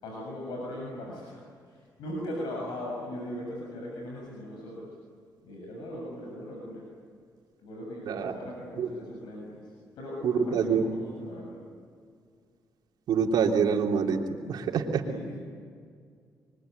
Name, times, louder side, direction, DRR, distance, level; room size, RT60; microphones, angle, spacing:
voice 1, 0.0-5.0 5.4-6.9 7.6-11.6 15.0-15.4, left 1 dB, 90° left, -2 dB, 7.3 m, -39 dB
voice 2, 10.2-10.8 13.1-14.2 14.5-15.0, right 6 dB, 80° right, 1 dB, 3.3 m, -25 dB
26.0 x 23.5 x 9.5 m, 2.1 s
cardioid pair, 70°, 7 cm